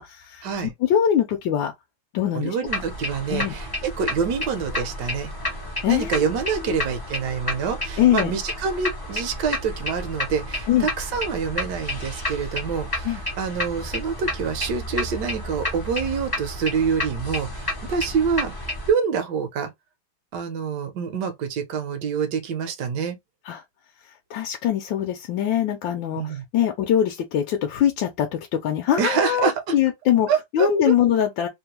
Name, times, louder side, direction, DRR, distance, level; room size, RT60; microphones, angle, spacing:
voice 1, 0.0-1.7 2.1-2.6 3.3-3.5 5.8-6.3 6.6-6.8 8.0-8.3 10.7-10.9 13.0-13.2 23.4-23.6 24.3-31.5, left 10 dB, 75° left, 1.2 m, -23 dB
voice 2, 2.3-5.3 5.9-18.5 18.9-19.7 20.3-23.2 26.1-26.4 29.0-29.7 30.3-30.9, right 6 dB, 65° right, 1.3 m, -26 dB
sound 1, 2.7-18.9, left 1 dB, 30° left, 0.4 m, -31 dB
3.4 x 2.2 x 2.9 m
omnidirectional pair, 2.3 m